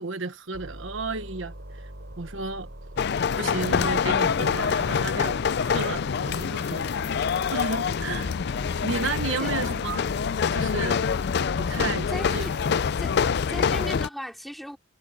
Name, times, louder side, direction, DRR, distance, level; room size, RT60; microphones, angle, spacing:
voice 1, 0.0-1.9 2.2-2.7 3.4-6.9 7.5-8.3 8.8-10.1 10.5-11.0 11.6-12.5, right 3 dB, 80° right, 1.2 m, -32 dB
sound 1, 0.5-3.4 3.7-6.5 6.8-9.6 10.0-12.7, right 1 dB, 65° right, 3.8 m, -42 dB
sound 2, 3.0-14.1, left 6 dB, 60° left, 0.4 m, -26 dB
voice 2, 12.1-12.5 13.0-14.8, equal, ahead, 4.4 m, -37 dB
head